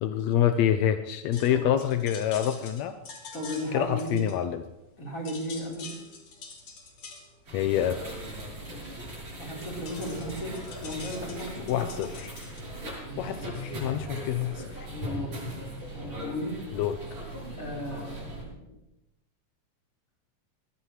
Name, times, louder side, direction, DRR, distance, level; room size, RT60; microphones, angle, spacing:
voice 1, 0.0-2.9 3.7-4.6 7.5-8.2 11.7-12.4 13.2-14.9 16.7-17.0, left 10 dB, 80° left, 8 dB, 1.6 m, -27 dB
sound 1, 1.3-4.9 5.2-12.6, left 4 dB, 55° left, 3.7 m, -46 dB
voice 2, 3.3-4.2 5.0-6.0 8.7-9.0 9.4-11.9 13.0-13.3 13.8-14.0 14.9-15.5 15.9-16.6 17.5-18.7, equal, 25° left, -3 dB, 4.4 m, -36 dB
sound 2, 7.5-18.4, equal, 35° right, 8.5 m, -39 dB
23.0 x 18.5 x 3.3 m, 0.95 s
omnidirectional pair, 3.9 m